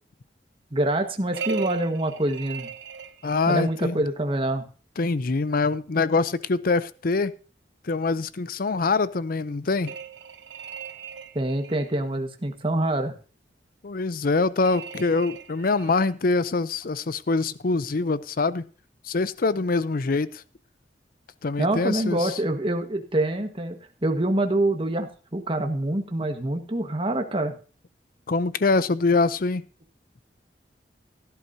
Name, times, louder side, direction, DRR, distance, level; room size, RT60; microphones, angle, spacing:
voice 1, 0.7-2.7 3.5-4.6 11.3-13.1 21.6-27.6, right 1 dB, 30° right, 5 dB, 1.5 m, -26 dB
sound 1, 1.3-3.8 9.8-12.0 14.6-16.1, right 6 dB, 80° right, 1.0 m, -37 dB
voice 2, 3.2-4.0 5.0-7.3 7.8-9.9 13.8-18.6 19.0-20.4 21.4-22.4 28.3-29.6, left 3 dB, 55° left, 16 dB, 0.6 m, -24 dB
16.5 x 11.0 x 2.8 m, 0.37 s
head